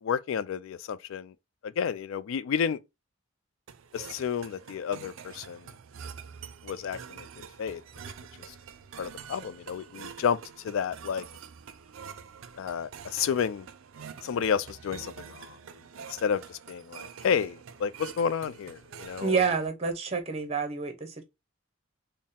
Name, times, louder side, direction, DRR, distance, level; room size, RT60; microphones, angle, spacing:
voice 1, 0.0-1.3 1.6-2.8 3.9-5.6 6.6-7.3 7.6-7.8 9.0-10.4 10.6-11.3 12.6-13.7 14.2-15.6 16.2-19.4, left 7 dB, 75° left, 0.3 m, -31 dB
sound 1, 3.7-19.7, right 7 dB, 75° right, 0.4 m, -46 dB
voice 2, 19.2-21.2, right 5 dB, 30° right, 0.6 m, -28 dB
4.0 x 2.0 x 3.5 m
head